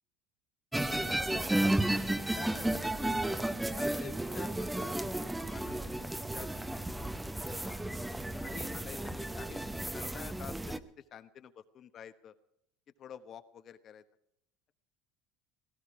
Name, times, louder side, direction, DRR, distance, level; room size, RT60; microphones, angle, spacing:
voice 1, 0.7-1.4 2.1-3.2 3.8-4.9 5.5-6.9 7.6-7.8 8.3-12.3 13.0-14.0, left 8 dB, 40° left, 10 dB, 1.2 m, -49 dB
sound 1, 0.7-10.8, right 1 dB, 5° right, 0.9 m, -33 dB
18.0 x 16.0 x 4.9 m, 0.75 s
supercardioid pair, 120°, 0 cm